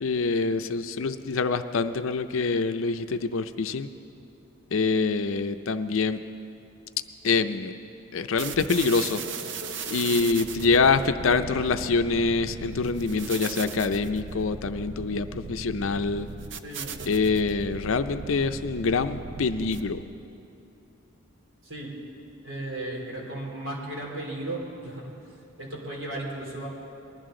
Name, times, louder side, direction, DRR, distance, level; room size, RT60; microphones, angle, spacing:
voice 1, 0.0-3.9 4.7-6.2 7.2-7.7 8.1-9.2 9.9-16.3 17.1-20.0, left 4 dB, 75° left, 10 dB, 0.5 m, -25 dB
sound 1, 8.4-20.2, right 4 dB, 55° right, 0.5 m, -38 dB
voice 2, 16.6-16.9 21.6-21.9 22.4-25.1 25.6-26.7, right 1 dB, 75° right, -3 dB, 3.2 m, -35 dB
20.5 x 12.5 x 3.8 m, 2.8 s
head